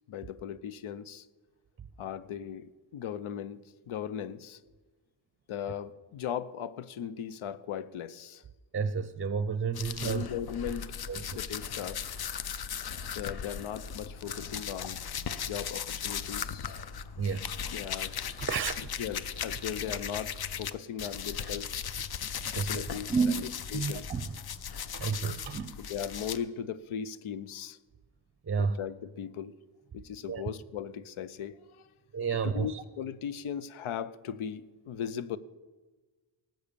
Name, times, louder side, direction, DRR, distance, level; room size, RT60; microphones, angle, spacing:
voice 1, 0.1-1.3 2.0-4.6 5.5-8.4 10.0-10.9 11.2-12.0 13.1-15.0 15.4-16.7 17.7-18.2 19.0-21.7 22.6-24.1 25.8-27.8 28.6-29.6 29.9-31.9 32.4-35.4, left 8 dB, 80° left, 15 dB, 0.8 m, -38 dB
voice 2, 8.7-10.3 11.1-11.4 17.2-17.5 18.4-18.8 22.5-24.3 24.9-25.8 28.5-28.8 30.3-30.4 32.1-32.8, right 5 dB, 25° right, 12 dB, 0.6 m, -31 dB
sound 1, 9.7-20.7 21.0-26.4, left 7 dB, 50° left, 0.7 m, -37 dB
18.5 x 7.8 x 6.9 m, 1.3 s
wide cardioid pair, 145°, 49 cm